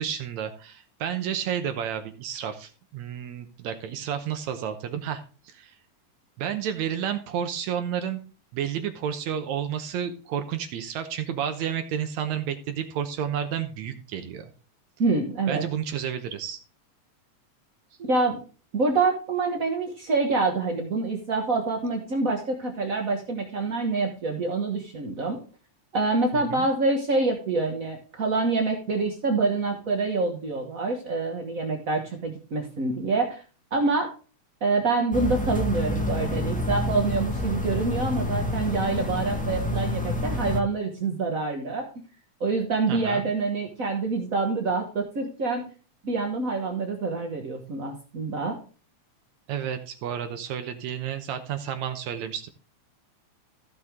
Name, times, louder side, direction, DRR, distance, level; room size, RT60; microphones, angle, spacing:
voice 1, 0.0-5.8 6.4-8.2 8.5-14.5 15.5-16.6 26.3-26.7 42.9-43.3 49.5-52.5, right 9 dB, 75° right, 8 dB, 2.1 m, -31 dB
voice 2, 15.0-15.6 18.0-18.4 18.7-25.4 25.9-33.4 33.7-34.1 34.6-41.9 42.4-45.7 46.0-48.6, right 3 dB, 55° right, 2 dB, 0.9 m, -26 dB
sound 1, 35.1-40.6, left 1 dB, 10° left, 0.5 m, -28 dB
14.5 x 6.2 x 3.5 m, 0.36 s
omnidirectional pair, 3.4 m